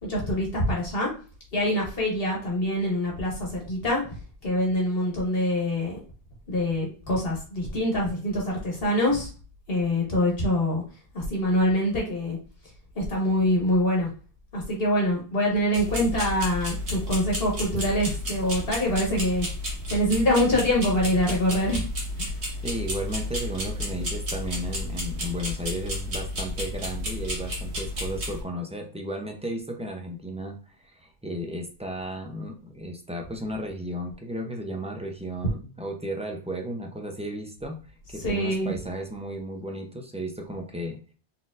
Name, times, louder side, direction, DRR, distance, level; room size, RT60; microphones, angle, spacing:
voice 1, 0.0-1.1 1.5-4.0 4.4-6.0 6.5-9.3 9.7-10.8 11.1-12.4 12.9-14.1 14.5-19.5 19.9-21.8 22.2-22.3 38.2-38.7, left 1 dB, 60° left, -2 dB, 1.3 m, -25 dB
sound 1, 15.7-28.4, left 1 dB, 85° right, 1.5 m, -32 dB
voice 2, 22.6-37.8 38.1-41.0, equal, 10° right, 2 dB, 0.5 m, -34 dB
4.3 x 3.7 x 2.5 m, 0.37 s
omnidirectional pair, 1.1 m